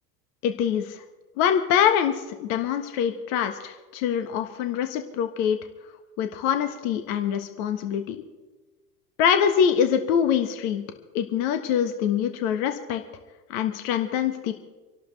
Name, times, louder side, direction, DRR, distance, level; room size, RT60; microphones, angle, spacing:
voice 1, 0.4-1.0 1.4-5.6 6.2-8.2 9.2-10.8 11.1-13.0 13.5-14.5, left 8 dB, 55° left, 7 dB, 1.5 m, -24 dB
26.5 x 12.0 x 3.4 m, 1.2 s
hypercardioid pair, 80°, 48 cm